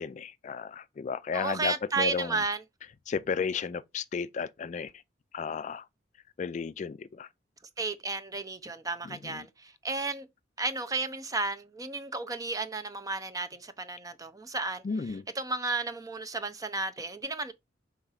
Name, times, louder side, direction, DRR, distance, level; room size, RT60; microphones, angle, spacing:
voice 1, 0.0-2.4 3.1-4.9 5.3-5.8 6.4-7.3 9.0-9.5 14.8-15.2, left 5 dB, 40° left, 0.3 m, -33 dB
voice 2, 1.3-2.6 7.8-10.3 10.6-14.8 15.3-17.5, right 3 dB, 20° right, 0.6 m, -33 dB
4.7 x 3.9 x 5.6 m
head